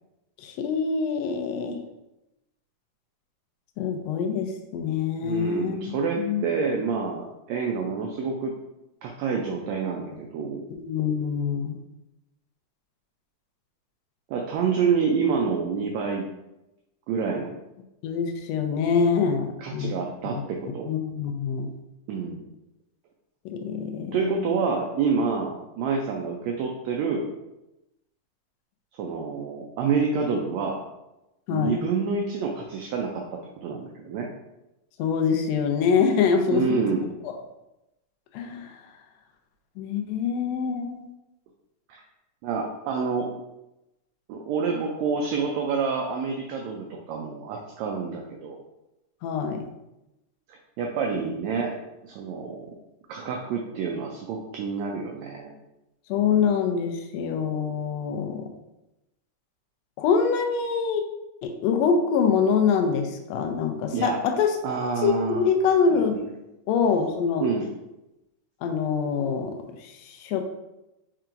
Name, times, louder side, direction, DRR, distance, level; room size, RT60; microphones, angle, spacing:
voice 1, 0.4-1.8 3.8-6.4 10.8-11.8 18.0-19.9 20.9-21.7 23.4-24.5 31.5-31.8 35.0-36.8 37.2-37.3 38.3-38.8 39.8-41.1 49.2-49.6 56.1-58.5 60.0-61.0 61.4-64.6 65.0-66.2 66.7-67.5 68.6-70.4, left 6 dB, 90° left, 5 dB, 1.5 m, -25 dB
voice 2, 5.2-8.5 9.0-10.6 14.3-16.2 17.1-17.6 19.6-20.9 22.1-22.5 24.1-27.3 29.0-30.8 31.5-34.3 36.5-37.1 41.9-42.0 42.4-43.3 44.3-48.6 50.5-51.8 52.0-52.7 53.1-55.5 63.9-64.2 64.6-65.5 65.9-66.3 67.4-67.7, right 5 dB, 85° right, 1 dB, 1.5 m, -28 dB
4.6 x 4.4 x 2.5 m, 0.93 s
omnidirectional pair, 3.6 m